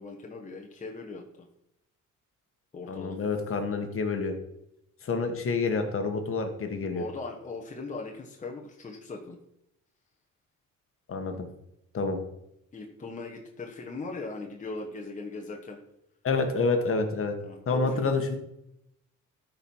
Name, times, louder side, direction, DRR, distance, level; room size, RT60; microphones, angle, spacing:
voice 1, 0.0-1.5 2.7-3.2 6.9-9.4 12.7-15.8 17.4-18.1, left 3 dB, 25° left, 1 dB, 1.2 m, -39 dB
voice 2, 2.9-4.3 5.0-7.0 11.1-11.5 11.9-12.2 16.2-17.3 17.7-18.4, left 4 dB, 45° left, 5 dB, 1.5 m, -28 dB
13.5 x 4.7 x 5.5 m, 0.81 s
cardioid pair, 135°, 31 cm